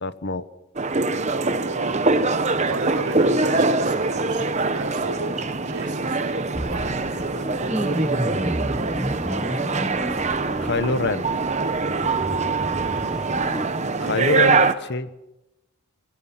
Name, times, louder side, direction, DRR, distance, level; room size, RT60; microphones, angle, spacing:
voice 1, 0.0-0.4 10.6-11.2 14.0-15.3, left 3 dB, 50° left, 13 dB, 1.0 m, -25 dB
sound 1, 0.8-14.7, right 3 dB, 30° right, 0.9 m, -23 dB
voice 2, 1.3-2.1 2.6-8.1 13.8-14.1, right 2 dB, 85° right, 1 dB, 3.9 m, -36 dB
sound 2, 6.5-13.7, equal, 5° right, 1.0 m, -31 dB
23.5 x 16.0 x 7.3 m, 0.94 s
head